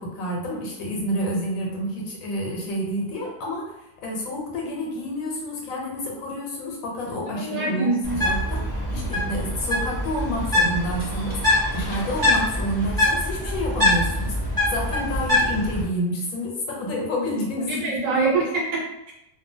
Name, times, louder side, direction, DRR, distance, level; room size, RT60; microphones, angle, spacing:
voice 1, 0.0-3.7 4.0-8.6 8.9-11.4 11.7-14.4 14.7-18.2, equal, 90° left, -1 dB, 1.2 m, -29 dB
voice 2, 7.2-8.2 17.7-19.1, right 3 dB, 75° right, -5 dB, 1.3 m, -25 dB
Bird, 8.0-15.8, left 1 dB, 20° right, 0.6 m, -24 dB
2.6 x 2.4 x 2.6 m, 0.87 s
omnidirectional pair, 1.4 m